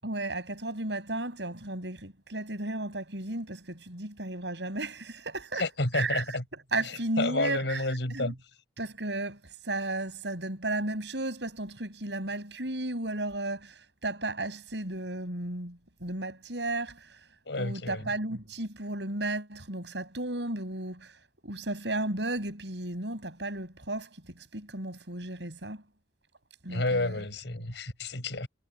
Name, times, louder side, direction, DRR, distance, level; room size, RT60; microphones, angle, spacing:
voice 1, 0.0-5.6 5.9-6.2 6.7-7.8 8.1-8.3 8.8-17.2 17.6-21.2 21.4-25.8 26.6-27.1, right 2 dB, 70° right, 6.7 m, -34 dB
voice 2, 5.6-6.4 6.8-8.3 17.5-18.1 26.7-28.5, left 2 dB, 75° left, 4.6 m, -30 dB
head